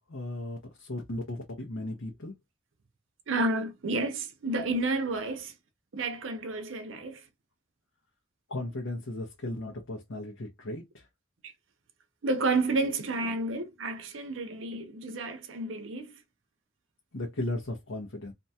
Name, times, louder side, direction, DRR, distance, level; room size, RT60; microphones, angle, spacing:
voice 1, 0.1-2.3 8.5-10.8 17.1-18.3, left 1 dB, 85° left, 0.9 m, -36 dB
voice 2, 3.3-5.5 5.9-7.2 12.2-16.2, right 2 dB, 75° right, 0.6 m, -30 dB
2.7 x 2.3 x 2.7 m
head